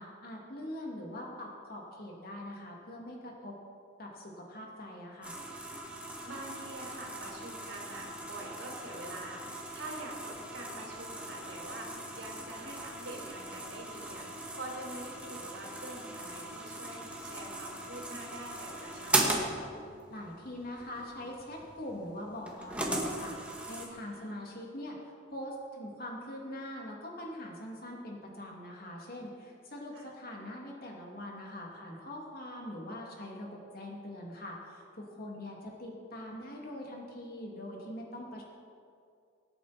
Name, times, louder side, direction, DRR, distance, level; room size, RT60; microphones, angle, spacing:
voice 1, 0.0-3.6 4.0-5.4 20.1-23.3 23.7-38.4, left 1 dB, 50° left, -1 dB, 2.9 m, -43 dB
sound 1, 5.2-23.9, right 1 dB, 5° right, 1.8 m, -38 dB
voice 2, 6.2-19.5 24.0-24.4 29.9-30.1 35.3-35.7, right 1 dB, 75° right, -3 dB, 3.6 m, -45 dB
24.0 x 9.1 x 4.4 m, 2.4 s
head